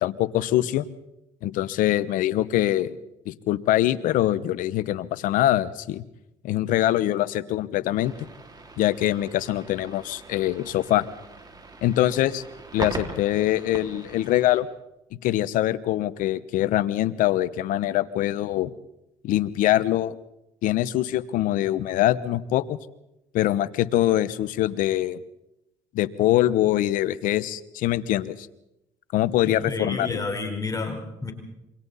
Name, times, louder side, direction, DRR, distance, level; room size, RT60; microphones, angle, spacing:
voice 1, 0.0-0.8 1.4-3.0 3.2-6.0 6.4-8.1 8.8-11.0 11.8-12.4 12.7-14.7 15.2-18.7 19.2-20.2 20.6-22.8 23.3-25.2 25.9-28.5 29.1-30.2, left 14 dB, 75° left, 17 dB, 1.0 m, -23 dB
sound 1, 7.9-14.6, right 2 dB, 30° right, 4.7 m, -40 dB
voice 2, 29.5-31.3, left 3 dB, 25° left, 3 dB, 4.6 m, -30 dB
27.5 x 23.5 x 4.1 m, 0.88 s
supercardioid pair, 70°, 14 cm